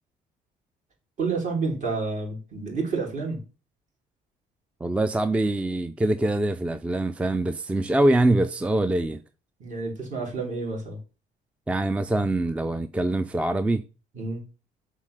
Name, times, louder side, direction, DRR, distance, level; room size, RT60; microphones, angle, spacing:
voice 1, 1.2-3.4 9.6-11.0 14.1-14.5, right 4 dB, 45° right, 3.5 m, -29 dB
voice 2, 4.8-9.2 11.7-13.8, right 2 dB, 5° right, 0.4 m, -24 dB
7.3 x 3.8 x 6.6 m
cardioid pair, 110°, 17 cm